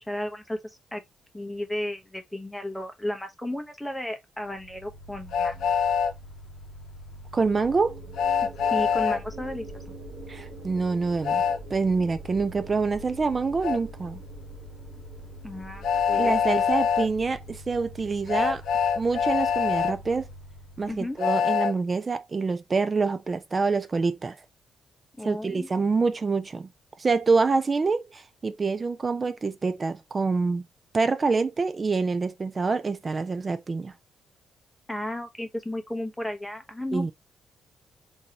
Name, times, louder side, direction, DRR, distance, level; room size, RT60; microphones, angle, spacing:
voice 1, 0.1-1.0 1.3-5.7 8.7-9.8 15.4-16.4 20.9-21.2 25.2-25.7 34.9-37.1, left 1 dB, 5° left, 0.9 m, -34 dB
Mechanical fan, 4.4-21.2, left 1 dB, 50° left, 0.8 m, -45 dB
Train, 5.3-6.1 8.2-9.2 11.2-11.6 13.6-13.8 15.8-17.1 18.3-19.9 21.2-21.7, left 7 dB, 85° left, 0.5 m, -24 dB
voice 2, 7.3-8.0 10.3-11.4 11.7-14.2 16.2-18.6 19.0-20.3 20.8-24.4 25.2-26.7 27.0-30.6 30.9-33.9 36.9-37.1, right 4 dB, 35° right, 0.5 m, -26 dB
sound 1, 7.5-17.9, right 3 dB, 80° right, 1.2 m, -46 dB
3.7 x 2.7 x 2.9 m
cardioid pair, 80°, 0 cm